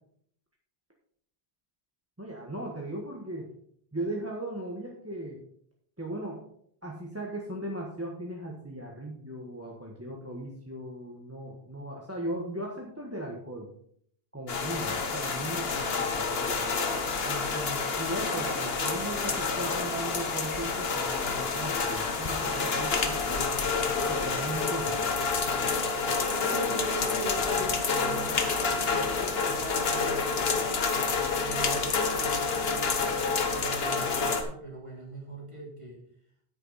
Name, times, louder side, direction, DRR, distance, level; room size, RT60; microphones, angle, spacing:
voice 1, 2.2-3.5 3.9-5.4 6.0-6.4 6.8-13.7 14.3-16.7 17.2-23.5 24.1-25.0, right 1 dB, 15° right, -2 dB, 1.4 m, -37 dB
sound 1, 14.5-34.4, left 4 dB, 75° left, 1.4 m, -28 dB
voice 2, 26.4-30.9 31.4-36.0, right 1 dB, 30° right, -2 dB, 3.1 m, -41 dB
9.7 x 9.3 x 4.1 m, 0.65 s
omnidirectional pair, 1.0 m